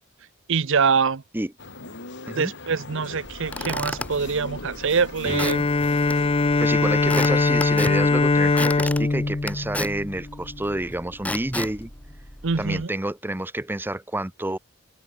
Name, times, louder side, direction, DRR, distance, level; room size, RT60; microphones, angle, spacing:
voice 1, 0.5-1.2 2.3-5.7 12.4-12.9, right 5 dB, 65° right, 0.8 m, -24 dB
sound 1, 1.6-7.5, left 2 dB, 60° left, 5.3 m, -40 dB
Squeak / Wood, 3.2-12.8, left 1 dB, 5° left, 5.0 m, -34 dB
Bowed string instrument, 5.2-10.7, left 3 dB, 25° left, 0.5 m, -22 dB
voice 2, 6.6-11.9 12.6-14.6, right 1 dB, 10° right, 0.9 m, -29 dB
head